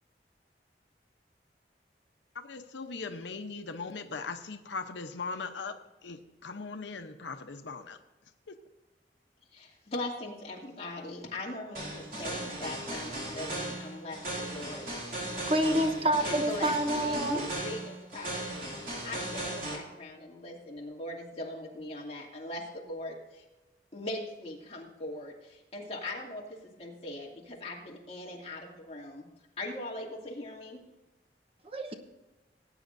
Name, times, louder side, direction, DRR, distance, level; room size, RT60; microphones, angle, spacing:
voice 1, 2.3-8.0, left 4 dB, 90° left, 0.8 m, -39 dB
voice 2, 9.5-14.9 16.2-18.6 19.0-23.4 23.9-29.3 29.6-30.8, left 1 dB, 35° left, 2.5 m, -40 dB
sound 1, 11.7-19.8, right 1 dB, 50° right, 3.5 m, -37 dB
voice 3, 15.5-17.4 31.7-31.9, right 1 dB, 30° right, 1.0 m, -27 dB
18.0 x 9.2 x 2.6 m
head